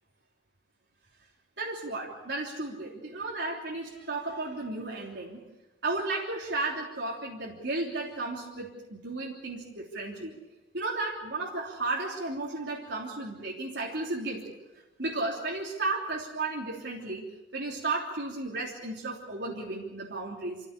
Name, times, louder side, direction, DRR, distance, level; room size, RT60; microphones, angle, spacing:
voice 1, 1.6-5.4 5.8-10.4 10.7-14.5 15.0-17.2 17.5-20.7, right 2 dB, 65° right, -3 dB, 3.3 m, -34 dB
26.0 x 16.0 x 8.3 m, 1.1 s
head